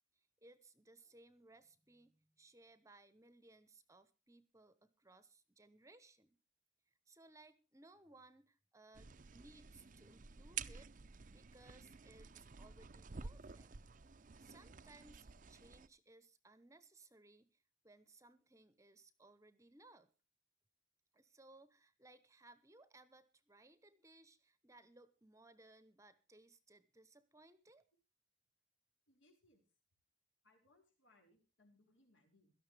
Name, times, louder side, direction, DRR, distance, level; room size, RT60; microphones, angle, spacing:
voice 1, 0.1-6.4 7.1-10.9 11.3-13.7 14.4-20.1 21.1-27.8, right 2 dB, 15° right, 14 dB, 0.9 m, -64 dB
sound 1, 8.9-15.9, right 6 dB, 45° right, 0.6 m, -51 dB
voice 2, 29.1-29.6 30.4-32.5, left 1 dB, 75° left, 3 dB, 5.6 m, -71 dB
17.5 x 13.0 x 3.4 m, 0.33 s
head